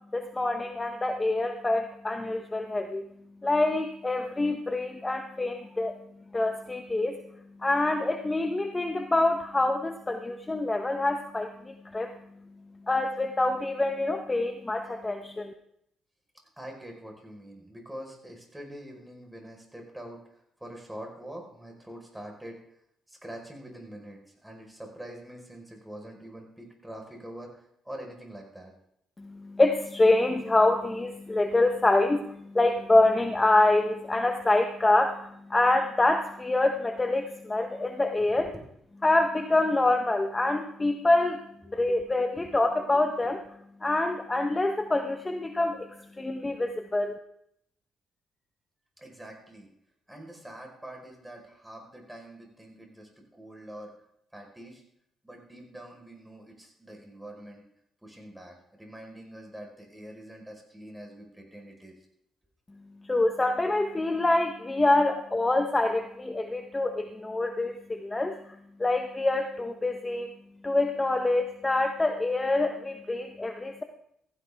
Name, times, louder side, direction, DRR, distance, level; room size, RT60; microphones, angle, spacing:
voice 1, 0.1-3.1 3.4-5.9 6.3-7.2 7.6-12.1 12.9-15.5 29.2-38.5 39.0-41.4 41.7-43.4 43.8-47.2 63.0-70.3 70.6-73.8, left 2 dB, 20° left, 5 dB, 1.1 m, -26 dB
voice 2, 16.6-20.2 20.6-22.6 23.1-28.7 38.3-38.6 41.6-41.8 42.4-42.5 49.0-49.7 50.1-53.9 54.3-54.8 55.2-57.6 58.0-62.0, right 1 dB, 5° right, 1 dB, 4.7 m, -45 dB
15.5 x 15.5 x 3.6 m, 0.74 s
cardioid pair, 90°, 0 cm